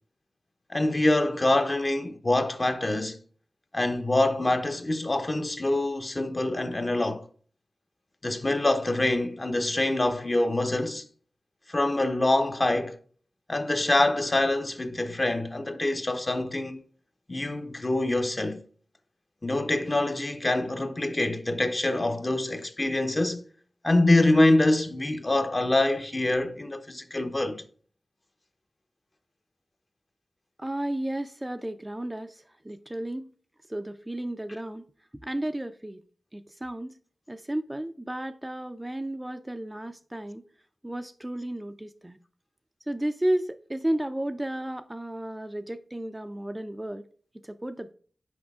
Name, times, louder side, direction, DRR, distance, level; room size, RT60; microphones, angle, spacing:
voice 1, 0.7-3.2 3.7-7.2 8.2-11.0 11.7-13.0 13.5-16.8 17.3-18.6 19.4-23.4 23.8-27.6, left 2 dB, 30° left, 0.8 m, -25 dB
voice 2, 30.6-33.3 33.7-34.9 35.2-36.0 36.3-37.0 37.3-40.5 40.8-42.2 42.9-47.0 47.4-47.9, right 1 dB, 15° right, 0.4 m, -33 dB
6.2 x 5.1 x 3.5 m
wide cardioid pair, 65°, 0 cm